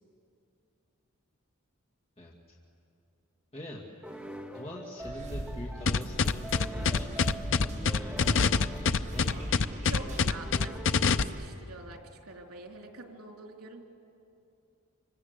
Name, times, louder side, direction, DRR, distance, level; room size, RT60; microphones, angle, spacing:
voice 1, 3.5-4.2 4.5-9.4, left 1 dB, 25° left, -3 dB, 2.3 m, -43 dB
sound 1, 4.0-11.7, right 1 dB, 5° right, 2.0 m, -45 dB
sound 2, 5.0-10.3, equal, 35° right, 7.7 m, -39 dB
sound 3, 5.9-11.2, left 5 dB, 60° left, 0.7 m, -25 dB
voice 2, 9.9-13.8, right 2 dB, 90° right, 1 dB, 3.7 m, -46 dB
26.5 x 26.0 x 8.2 m, 2.7 s
head